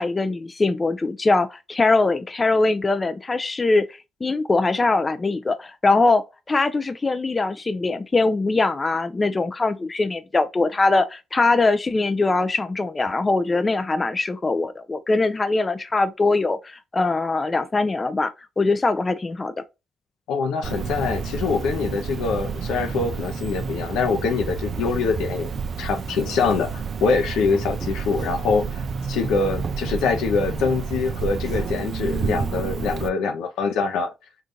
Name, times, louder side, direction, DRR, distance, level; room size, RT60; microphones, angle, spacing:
voice 1, 0.0-3.9 4.2-18.3 18.6-19.5, left 3 dB, 30° left, 0.4 m, -22 dB
voice 2, 20.3-25.5 25.8-28.8 29.1-34.1, left 5 dB, 80° left, 0.7 m, -24 dB
Cricket, 20.6-33.1, right 5 dB, 55° right, 0.4 m, -30 dB
3.8 x 2.4 x 2.6 m
supercardioid pair, 65°, 0 cm